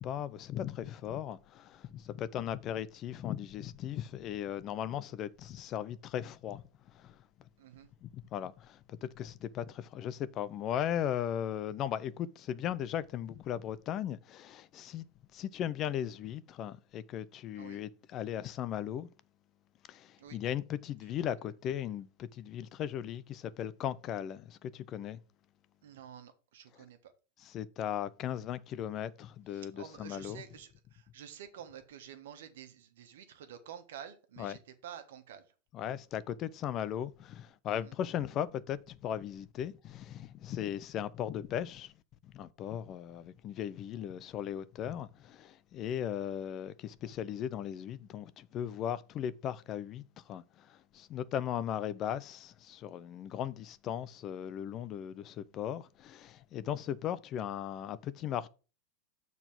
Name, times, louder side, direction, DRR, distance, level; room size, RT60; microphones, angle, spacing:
voice 1, 0.0-7.2 8.0-15.1 15.3-19.1 19.9-25.2 27.4-30.4 34.4-34.6 35.7-41.9 42.2-58.5, left 10 dB, 35° left, 0.5 m, -37 dB
voice 2, 7.6-7.9 17.6-17.8 20.2-20.4 25.8-27.1 29.5-35.4 37.8-37.9, right 9 dB, 80° right, 1.4 m, -49 dB
6.9 x 4.1 x 5.9 m
supercardioid pair, 135°, 0 cm